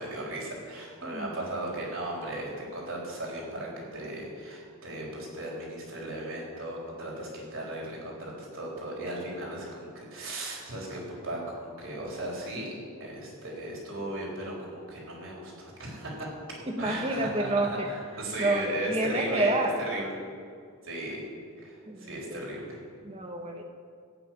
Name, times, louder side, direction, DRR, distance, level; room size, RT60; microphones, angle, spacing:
voice 1, 0.0-12.7 13.0-16.3 16.8-17.5 17.9-19.6 19.9-20.1 20.8-21.2 21.6-22.8, right 1 dB, 65° right, -3 dB, 4.0 m, -36 dB
voice 2, 1.0-1.4 16.7-17.9 18.4-19.8 21.9-22.5 23.0-23.6, right 1 dB, 25° right, 3 dB, 1.4 m, -29 dB
14.5 x 6.1 x 9.1 m, 2.2 s
head